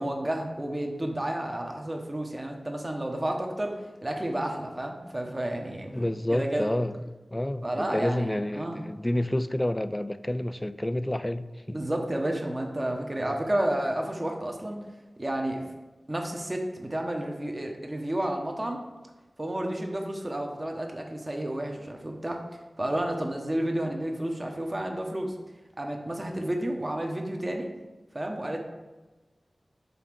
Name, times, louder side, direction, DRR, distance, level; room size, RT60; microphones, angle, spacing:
voice 1, 0.0-6.0 6.3-6.7 7.6-8.8 11.7-14.8 15.2-15.6 16.1-18.8 19.4-22.4 22.8-25.3 25.8-27.7 28.1-28.6, right 1 dB, 30° right, 1.1 m, -31 dB
voice 2, 5.9-11.8 13.2-13.4, left 1 dB, 20° left, 0.3 m, -29 dB
5.6 x 4.2 x 6.1 m
wide cardioid pair, 85°, 0 cm